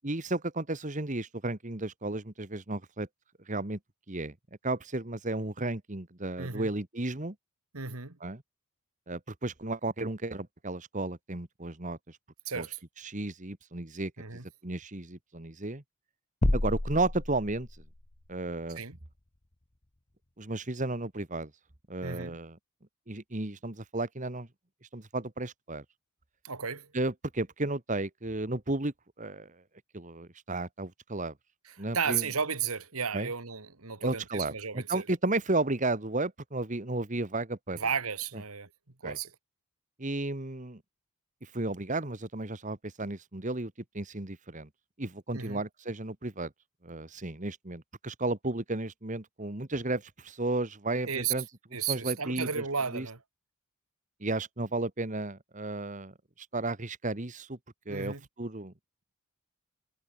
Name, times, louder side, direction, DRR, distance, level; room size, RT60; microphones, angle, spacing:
voice 1, 0.0-3.1 3.5-3.8 4.1-4.3 4.6-7.3 8.2-8.4 9.1-12.2 12.5-12.6 13.0-14.1 14.6-15.8 16.5-17.7 18.3-18.8 20.4-21.5 21.9-22.6 23.1-24.5 24.9-25.8 26.9-29.5 29.9-31.3 31.8-32.2 33.1-33.3 34.0-37.9 39.0-39.2 40.0-40.8 41.4-44.7 45.0-46.5 46.8-51.4 51.9-52.5 52.9-53.0 54.2-57.6 57.8-58.7, right 2 dB, 35° right, 1.6 m, -33 dB
voice 2, 6.4-6.7 7.7-8.2 12.5-12.8 14.2-14.5 18.8-19.0 22.0-22.4 26.4-26.9 31.6-35.1 37.8-38.7 39.0-39.3 45.3-45.6 51.0-51.3 51.7-53.2 57.9-58.3, right 6 dB, 85° right, 2.2 m, -34 dB
sound 1, 16.4-18.0, left 1 dB, 30° left, 1.1 m, -29 dB
head